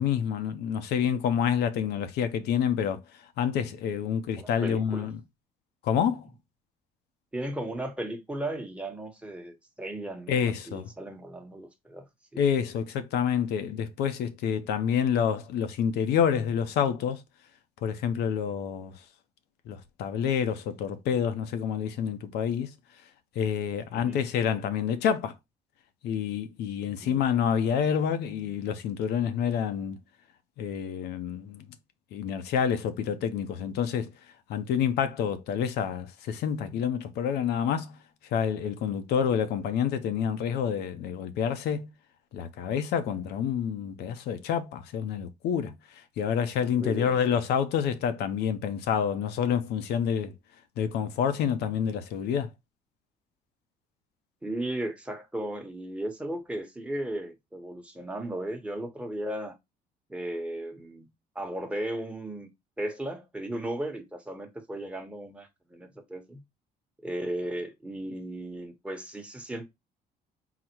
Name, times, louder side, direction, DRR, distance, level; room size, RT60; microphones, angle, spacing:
voice 1, 0.0-3.0 3.4-5.2 5.8-6.3 10.3-10.9 12.4-17.2 17.8-18.9 19.7-22.7 23.4-25.3 26.0-30.0 30.6-31.7 32.1-34.1 34.5-38.0 38.3-41.9 42.3-45.7 46.2-50.3 50.8-52.5, left 8 dB, 75° left, 0.7 m, -28 dB
voice 2, 4.1-5.1 7.3-12.0 12.3-12.4 24.0-24.2 27.0-27.2 46.8-47.2 54.4-59.6 60.1-61.1 61.3-62.5 62.8-66.4 67.0-69.7, right 1 dB, 5° right, 0.9 m, -36 dB
4.0 x 2.1 x 4.4 m
cardioid pair, 110°, 17 cm